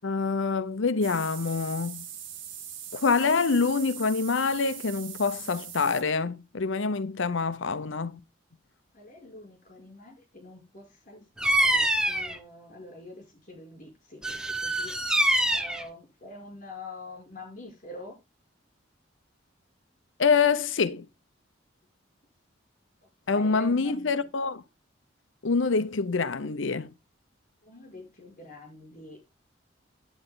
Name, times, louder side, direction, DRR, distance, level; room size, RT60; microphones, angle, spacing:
voice 1, 0.0-2.0 2.9-8.2 20.2-21.1 23.3-24.6 25.4-26.9, left 4 dB, 75° left, 0.7 m, -26 dB
sound 1, 1.0-6.0, right 9 dB, 80° right, 1.8 m, -41 dB
voice 2, 8.9-15.0 15.5-18.1 23.3-24.3 27.6-29.3, left 2 dB, 40° left, 6.1 m, -46 dB
Bird vocalization bird call bird song, 11.4-12.4 14.2-15.8, right 1 dB, 5° right, 0.8 m, -25 dB
10.0 x 8.8 x 3.9 m
head